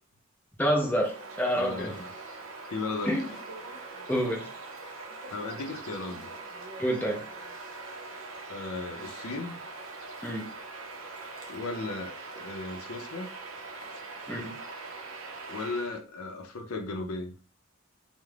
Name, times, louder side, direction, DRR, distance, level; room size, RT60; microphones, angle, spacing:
voice 1, 0.6-1.9 3.1-3.3 4.1-4.5 6.8-7.3 10.2-10.5 14.3-14.6, equal, 10° left, -2 dB, 0.4 m, -28 dB
Bird vocalization bird call bird song, 0.7-16.0, right 3 dB, 65° right, 0.5 m, -42 dB
voice 2, 1.6-2.1 2.7-3.4 5.3-6.3 8.5-9.6 11.5-13.3 15.5-17.3, left 3 dB, 85° left, 5 dB, 0.5 m, -36 dB
2.4 x 2.0 x 3.1 m, 0.38 s
head